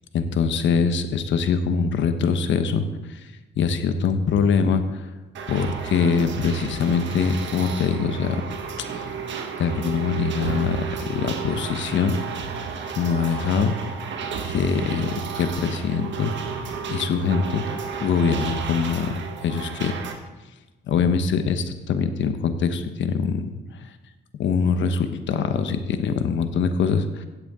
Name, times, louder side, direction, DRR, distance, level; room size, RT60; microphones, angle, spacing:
voice 1, 0.1-5.1 5.5-8.4 8.9-9.1 9.6-12.2 13.0-13.8 14.5-16.3 16.9-17.6 18.0-19.9 20.9-23.5 24.4-27.3, left 6 dB, 70° left, 9 dB, 1.0 m, -23 dB
sound 1, 5.3-20.1, right 6 dB, 70° right, 1.6 m, -32 dB
16.0 x 8.3 x 3.7 m, 1.1 s
cardioid pair, 90°, 20 cm